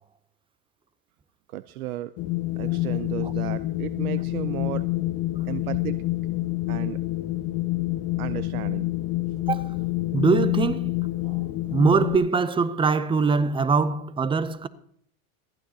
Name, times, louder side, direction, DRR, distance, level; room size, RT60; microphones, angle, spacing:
voice 1, 1.5-2.1 2.6-4.9 5.5-6.0 6.7-7.0 8.2-8.9, right 15 dB, 90° right, 0.6 m, -34 dB
Wind, 2.2-12.2, left 18 dB, 55° left, 1.1 m, -27 dB
voice 2, 10.1-14.7, right 4 dB, 10° right, 0.5 m, -23 dB
27.0 x 9.4 x 2.8 m
supercardioid pair, 120°, 42 cm